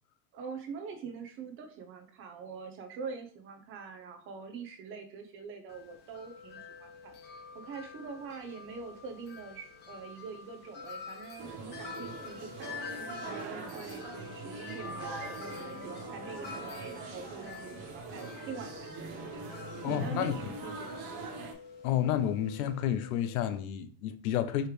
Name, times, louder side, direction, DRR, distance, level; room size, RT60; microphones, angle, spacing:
voice 1, 0.3-12.8 13.0-19.1 19.9-21.1, right 5 dB, 30° right, 0.6 m, -44 dB
Wind chime, 5.7-23.6, left 5 dB, 25° left, 0.9 m, -47 dB
sound 1, 11.4-21.5, right 4 dB, 45° right, 1.1 m, -43 dB
voice 2, 19.8-20.3 21.8-24.7, left 10 dB, 70° left, 0.7 m, -30 dB
4.9 x 3.2 x 3.2 m
supercardioid pair, 150°, 44 cm